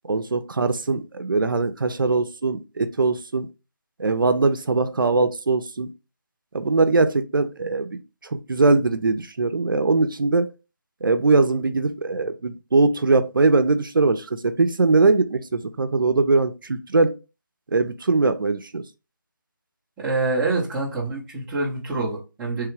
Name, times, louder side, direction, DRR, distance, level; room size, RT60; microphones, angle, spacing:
voice 1, 0.0-3.5 4.0-5.9 6.5-10.5 11.0-17.1 17.7-18.8, right 3 dB, 80° right, 0.5 m, -21 dB
voice 2, 20.0-22.7, right 3 dB, 5° right, 0.5 m, -26 dB
3.3 x 2.3 x 3.1 m
figure-of-eight pair, 160°, 11 cm